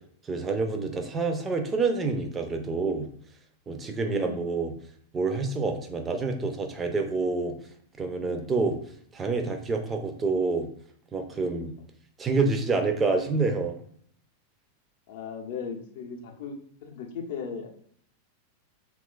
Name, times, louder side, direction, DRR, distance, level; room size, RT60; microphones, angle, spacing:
voice 1, 0.2-3.0 3.7-4.7 5.1-7.5 8.0-8.8 9.1-10.7 11.1-11.7 12.2-13.7, right 3 dB, 20° right, 5 dB, 0.4 m, -27 dB
voice 2, 4.0-4.5 8.4-8.8 15.1-16.6 16.8-17.7, left 6 dB, 50° left, 2 dB, 0.5 m, -37 dB
2.9 x 2.3 x 2.2 m, 0.62 s
figure-of-eight pair, 90°, 0 cm